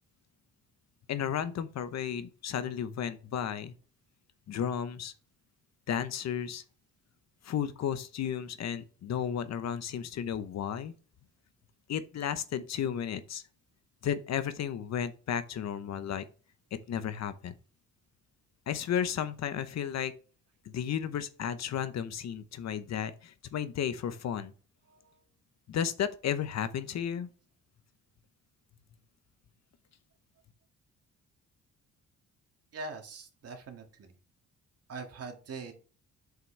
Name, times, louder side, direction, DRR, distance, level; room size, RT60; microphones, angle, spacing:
voice 1, 1.1-3.7 4.5-5.1 5.9-6.6 7.4-10.9 11.9-13.4 14.0-16.2 16.9-17.5 18.7-20.1 20.6-24.5 25.7-27.3, left 9 dB, 60° left, 0.9 m, -33 dB
voice 2, 32.7-34.1 34.9-35.7, right 3 dB, 55° right, 1.9 m, -42 dB
7.6 x 5.8 x 3.3 m
cardioid pair, 90°, 30 cm